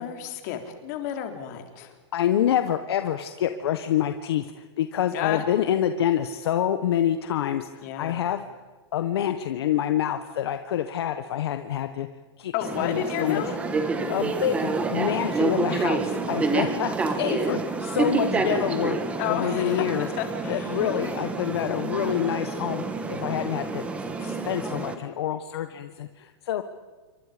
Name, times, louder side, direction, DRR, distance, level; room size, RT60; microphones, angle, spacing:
voice 1, 0.0-1.9 5.1-5.4 7.8-8.3 12.5-13.5 17.2-17.3 19.2-20.8, left 9 dB, 35° left, 5 dB, 3.6 m, -31 dB
voice 2, 1.8-8.4 8.9-12.1 12.4-12.5 12.8-13.5 14.1-16.9 17.2-19.0 19.3-20.1 20.5-22.8 23.1-23.8 24.2-26.6, left 10 dB, 60° left, 9 dB, 1.4 m, -27 dB
sound 1, 12.6-24.9, right 3 dB, 10° right, 1.7 m, -28 dB
28.0 x 24.5 x 5.2 m, 1.3 s
hypercardioid pair, 165°, 15 cm